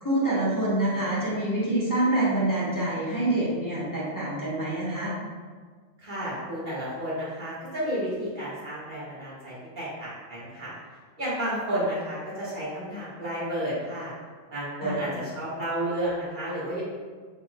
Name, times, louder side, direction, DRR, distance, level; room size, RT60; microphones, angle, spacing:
voice 1, 0.0-5.1 14.8-15.1, right 1 dB, 15° left, -8 dB, 1.0 m, -26 dB
voice 2, 6.0-10.7 11.2-14.1 14.5-16.8, right 1 dB, 40° right, -9 dB, 1.6 m, -31 dB
4.4 x 4.2 x 2.3 m, 1.5 s
omnidirectional pair, 1.3 m